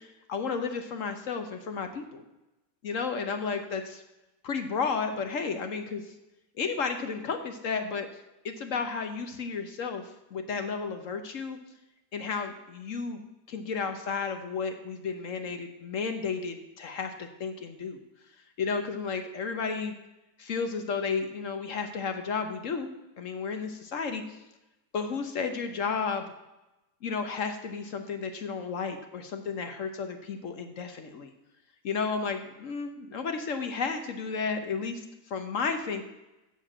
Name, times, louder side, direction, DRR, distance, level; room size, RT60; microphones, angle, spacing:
voice 1, 0.0-2.2 2.8-4.0 4.4-6.0 6.6-8.1 8.4-11.6 12.1-18.0 18.6-19.9 20.4-22.9 23.2-24.4 24.9-26.3 27.0-31.3 31.8-36.0, left 5 dB, 55° left, 6 dB, 1.0 m, -33 dB
7.4 x 7.0 x 7.3 m, 0.97 s
omnidirectional pair, 1.8 m